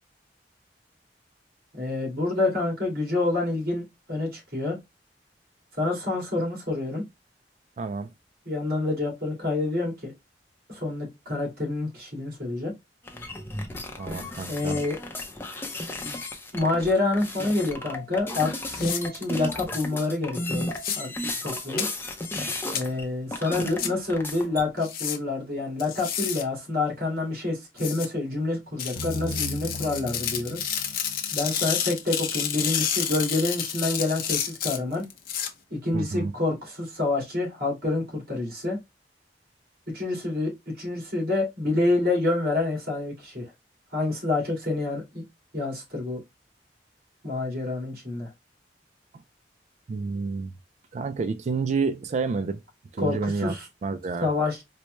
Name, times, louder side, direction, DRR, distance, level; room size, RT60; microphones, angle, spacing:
voice 1, 1.8-4.8 5.8-7.0 8.5-10.1 10.7-12.7 14.5-15.0 16.5-20.7 21.0-21.1 21.4-21.9 22.7-30.6 31.3-35.1 35.7-38.8 39.9-43.4 43.9-45.2 45.5-46.2 47.2-48.3 53.0-53.6 54.2-54.6, left 2 dB, 55° right, 2.1 m, -27 dB
voice 2, 7.8-8.1 14.0-14.8 35.9-36.3 49.9-50.5 50.9-52.6 52.9-53.6 53.8-54.3, right 4 dB, 40° right, 0.3 m, -29 dB
sound 1, 13.0-23.0 23.3-24.7, left 1 dB, 15° left, 0.6 m, -34 dB
sound 2, 18.7-19.0 20.7-21.0 21.8-21.9 22.7-22.8 23.8-23.9 24.8-25.2 25.8-26.4 27.8-28.1 28.8-35.5, left 9 dB, 55° left, 0.6 m, -30 dB
sound 3, 29.0-32.2, equal, 70° left, 1.1 m, -37 dB
4.4 x 2.1 x 3.1 m
head